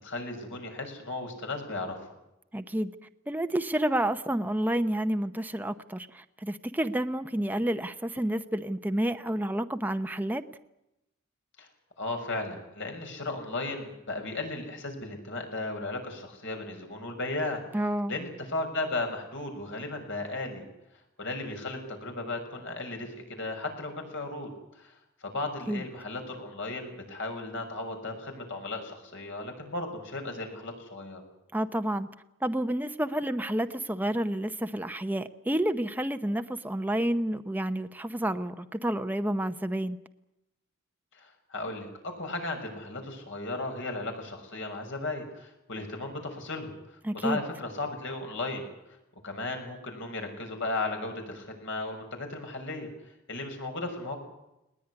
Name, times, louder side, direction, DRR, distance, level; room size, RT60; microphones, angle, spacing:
voice 1, 0.0-2.0 11.6-11.7 12.0-17.6 18.1-20.6 21.2-24.5 24.8-24.9 25.2-31.2 41.1-41.9 42.2-46.7 47.1-48.7 49.2-52.9 53.3-54.2, left 2 dB, 65° left, 4 dB, 6.5 m, -35 dB
voice 2, 2.5-2.9 3.3-10.4 17.7-18.2 25.7-25.8 31.5-32.1 32.4-40.0 47.0-47.4, right 1 dB, 10° right, 8 dB, 0.8 m, -29 dB
20.5 x 20.0 x 9.8 m, 0.89 s
head